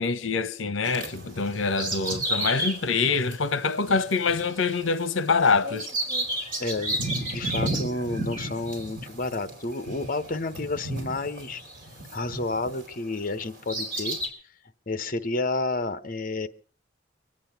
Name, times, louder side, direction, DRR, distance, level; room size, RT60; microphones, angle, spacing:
voice 1, 0.0-5.9, left 4 dB, 80° left, 0.8 m, -25 dB
Bird vocalization bird call bird song, 0.8-12.9 13.4-14.3, right 1 dB, 45° right, 4.6 m, -32 dB
voice 2, 6.6-11.6 12.1-14.2 14.9-16.5, left 2 dB, 45° left, 1.0 m, -30 dB
24.5 x 8.7 x 5.8 m
head